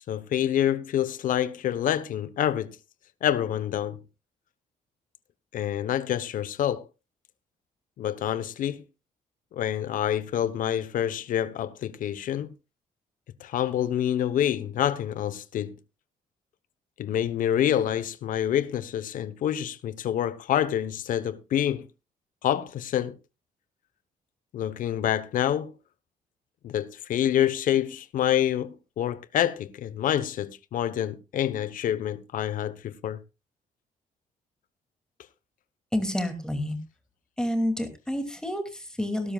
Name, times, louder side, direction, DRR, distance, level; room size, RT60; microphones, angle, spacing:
voice 1, 0.1-2.8 3.2-4.0 5.5-6.9 8.0-8.8 9.5-12.5 13.4-15.8 17.0-21.9 22.4-23.1 24.5-25.7 26.6-33.2, left 10 dB, 65° left, 1.0 m, -27 dB
voice 2, 35.9-36.8 37.4-39.3, left 1 dB, 5° left, 2.6 m, -29 dB
18.0 x 12.5 x 2.4 m
cardioid pair, 130°, 15 cm